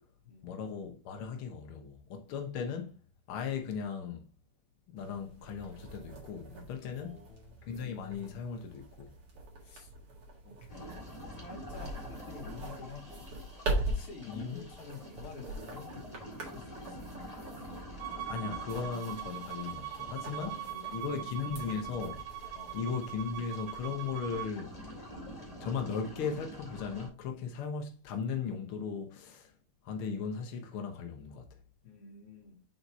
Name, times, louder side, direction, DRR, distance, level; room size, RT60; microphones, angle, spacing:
voice 1, 0.4-2.9 3.3-4.3 4.9-7.2 7.7-9.1 14.3-14.6 18.3-20.6 20.9-22.2 22.7-24.7 25.6-29.5 29.8-31.5, left 6 dB, 80° left, 1.1 m, -37 dB
sound 1, 5.0-24.1, right 2 dB, 50° right, 2.4 m, -43 dB
voice 2, 6.9-7.7 9.6-9.9 10.4-11.0 11.3-13.3 13.9-17.0 19.9-21.5 22.5-22.8 31.8-32.6, left 5 dB, 50° left, 1.9 m, -50 dB
sound 2, 10.7-27.1, equal, 15° left, 2.0 m, -47 dB
Bowed string instrument, 18.0-24.5, right 12 dB, 75° right, 1.9 m, -42 dB
5.8 x 4.1 x 4.5 m
omnidirectional pair, 3.7 m